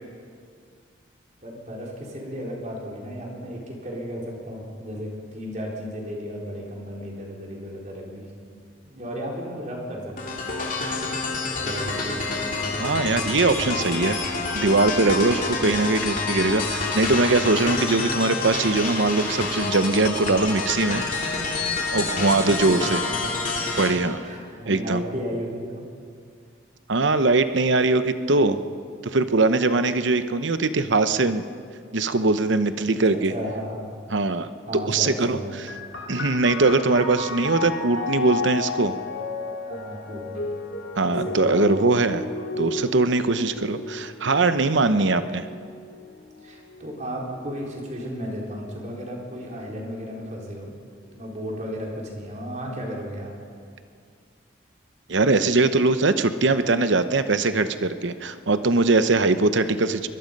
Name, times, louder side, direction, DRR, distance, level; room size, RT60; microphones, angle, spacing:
voice 1, 1.4-8.3 8.8-10.5 11.6-12.8 22.0-23.1 24.2-25.9 32.8-33.0 33.3-34.0 34.7-35.6 39.6-40.5 41.0-41.8 46.4-50.7 51.1-53.4 55.3-55.4, equal, 35° right, -2 dB, 4.2 m, -34 dB
sound 1, 10.2-23.9, left 3 dB, 40° left, 2.9 m, -28 dB
voice 2, 12.8-21.0 21.9-23.0 23.7-24.2 24.7-25.0 26.9-28.6 29.0-31.4 31.9-33.3 34.1-34.5 34.9-35.7 36.1-39.0 41.0-42.2 42.6-45.5 55.1-60.1, right 3 dB, 70° right, 11 dB, 0.8 m, -21 dB
sound 2, 35.7-48.9 49.8-50.5, left 3 dB, 70° left, 2.7 m, -34 dB
22.5 x 21.5 x 5.4 m, 2.2 s
head